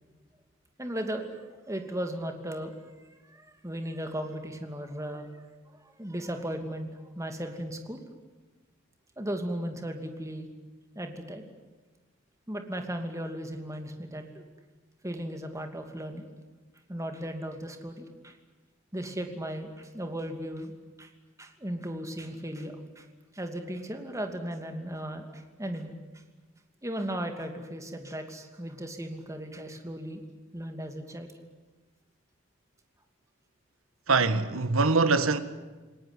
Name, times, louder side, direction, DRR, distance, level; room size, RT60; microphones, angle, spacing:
voice 1, 0.8-2.8 3.1-5.3 5.7-8.0 9.2-10.5 10.9-11.5 12.5-14.4 15.0-16.3 16.9-18.4 18.9-21.1 21.4-23.1 23.3-26.2 26.8-30.2 30.5-31.3, right 1 dB, 15° right, 2.6 m, -36 dB
voice 2, 34.1-35.4, right 3 dB, 80° right, 1.5 m, -23 dB
27.5 x 18.5 x 9.8 m
head